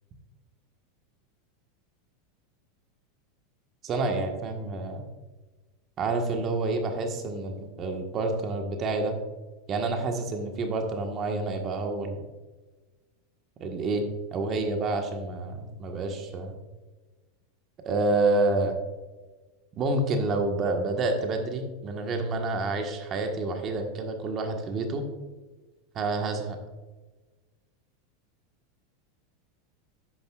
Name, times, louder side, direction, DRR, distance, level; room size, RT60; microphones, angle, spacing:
voice 1, 3.8-5.0 6.0-9.1 9.7-12.2 13.6-14.1 14.3-16.5 17.8-18.8 19.7-25.0 25.9-26.6, right 2 dB, 40° right, 4 dB, 1.5 m, -28 dB
10.5 x 8.9 x 2.5 m, 1.2 s
hypercardioid pair, 100°, 0 cm